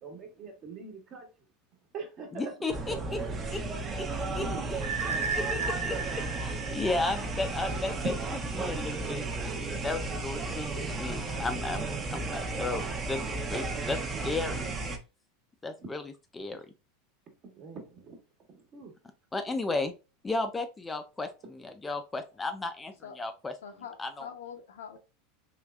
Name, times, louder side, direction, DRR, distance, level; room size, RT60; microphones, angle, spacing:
voice 1, 0.0-1.3 1.9-2.5 4.3-4.7 8.0-8.1 17.5-18.2 18.7-18.9, right 4 dB, 40° right, 1.1 m, -40 dB
voice 2, 2.3-3.2 3.5-3.6 4.0-4.1 4.3-4.5 5.1-6.0 6.4-8.1 8.5-9.3 9.8-14.6 15.6-16.6 19.3-19.9 20.2-23.5 24.0-24.3, left 3 dB, 15° left, 0.4 m, -34 dB
sound 1, 2.7-15.0, right 3 dB, 25° right, 0.7 m, -34 dB
sound 2, 4.8-7.7, right 4 dB, 90° right, 0.6 m, -34 dB
voice 3, 23.6-25.0, left 7 dB, 90° left, 0.7 m, -44 dB
3.4 x 3.1 x 2.3 m
supercardioid pair, 110°, 0 cm